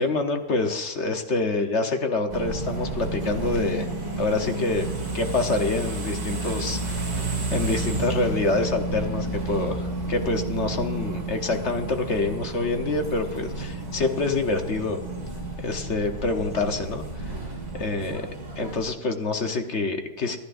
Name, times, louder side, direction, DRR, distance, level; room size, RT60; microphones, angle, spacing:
voice 1, 0.0-3.9 4.2-4.9 5.1-15.0 15.6-17.0 17.8-18.2 18.6-20.4, left 3 dB, 45° left, 5 dB, 1.2 m, -26 dB
sound 1, 2.3-18.9, right 2 dB, 40° right, 2.5 m, -31 dB
26.0 x 10.5 x 2.6 m, 1.1 s
omnidirectional pair, 1.8 m